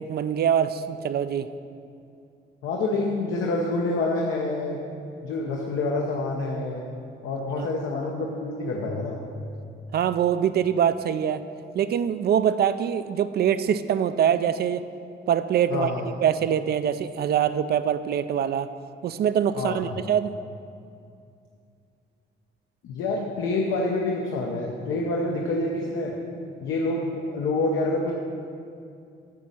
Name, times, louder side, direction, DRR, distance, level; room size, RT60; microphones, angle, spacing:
voice 1, 0.0-1.5 7.6-7.7 9.9-11.4 11.7-14.8 15.3-18.7 19.0-20.3, right 9 dB, 55° right, 12 dB, 0.4 m, -24 dB
voice 2, 2.6-4.8 5.2-6.8 7.2-9.2 15.7-16.0 19.6-20.0 22.8-26.2 26.6-28.1, left 2 dB, 80° left, -1 dB, 0.9 m, -27 dB
9.4 x 4.1 x 7.4 m, 2.5 s
cardioid pair, 90°, 20 cm